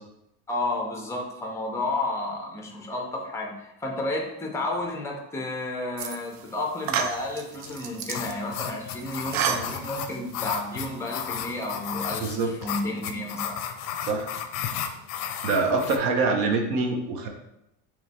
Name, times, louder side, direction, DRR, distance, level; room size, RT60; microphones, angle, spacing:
voice 1, 0.5-13.6, left 2 dB, 10° left, 1 dB, 0.5 m, -31 dB
sound 1, 6.0-6.4 6.8-8.3 9.0-10.2, right 7 dB, 50° right, 0.4 m, -30 dB
sound 2, 7.7-16.0, left 8 dB, 60° left, 0.5 m, -34 dB
voice 2, 12.2-12.5 14.0-14.3 15.4-17.3, right 3 dB, 85° right, 4 dB, 0.8 m, -25 dB
3.2 x 3.0 x 4.1 m, 0.85 s
cardioid pair, 155°, 36 cm